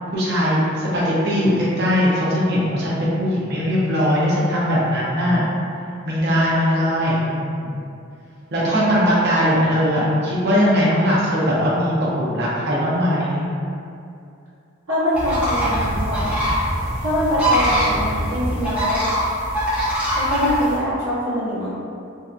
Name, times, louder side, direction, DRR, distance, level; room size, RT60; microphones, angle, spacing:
voice 1, 0.1-5.4 6.0-7.7 8.5-13.4, equal, 55° right, -6 dB, 0.6 m, -20 dB
voice 2, 14.9-16.4 17.0-19.0 20.1-21.7, left 1 dB, 75° right, -16 dB, 1.0 m, -23 dB
sound 1, 15.1-20.7, equal, 5° right, 0.6 m, -22 dB
2.7 x 2.2 x 2.4 m, 2.5 s
head